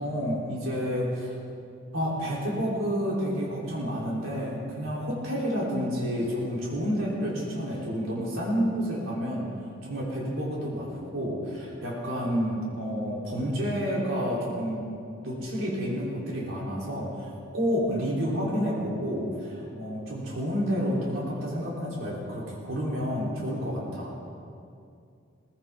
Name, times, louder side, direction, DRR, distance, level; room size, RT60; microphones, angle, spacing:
voice 1, 0.0-1.4 1.9-9.5 9.8-14.9 15.2-24.1, equal, 85° right, -5 dB, 3.6 m, -30 dB
18.0 x 16.0 x 3.7 m, 2.4 s
head